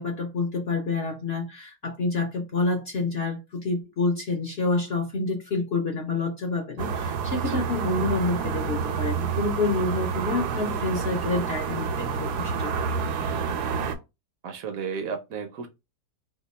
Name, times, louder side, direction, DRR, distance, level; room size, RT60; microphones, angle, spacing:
voice 1, 0.0-13.0, left 3 dB, 60° left, 0.7 m, -28 dB
sound 1, 6.8-14.0, right 6 dB, 85° right, 1.2 m, -28 dB
voice 2, 14.4-15.7, right 6 dB, 70° right, 1.0 m, -33 dB
2.8 x 2.2 x 4.1 m
omnidirectional pair, 1.7 m